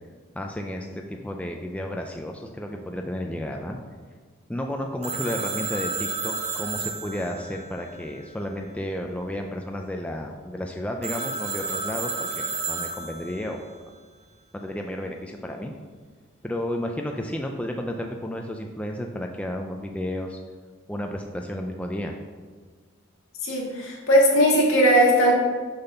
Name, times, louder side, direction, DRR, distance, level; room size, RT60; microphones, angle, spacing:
voice 1, 0.3-3.8 4.5-13.6 14.5-15.7 16.4-20.4 20.9-22.1, left 1 dB, 5° left, 2 dB, 0.3 m, -32 dB
Telephone, 5.0-8.7 11.0-13.6, right 4 dB, 30° right, 0.8 m, -32 dB
voice 2, 23.4-25.3, equal, 70° left, -2 dB, 1.7 m, -18 dB
6.7 x 4.1 x 5.5 m, 1.5 s
head